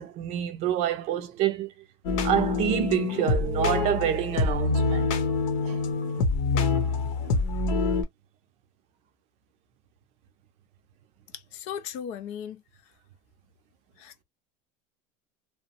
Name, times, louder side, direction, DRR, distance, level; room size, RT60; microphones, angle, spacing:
voice 1, 0.0-1.7 2.2-5.1 5.6-6.1 7.2-7.4, right 11 dB, 40° right, 0.5 m, -28 dB
sound 1, 2.0-8.0, left 4 dB, 60° left, 0.8 m, -26 dB
voice 2, 11.3-12.6 14.0-14.2, left 8 dB, 45° left, 0.4 m, -37 dB
2.9 x 2.0 x 2.8 m
cardioid pair, 170°, 17 cm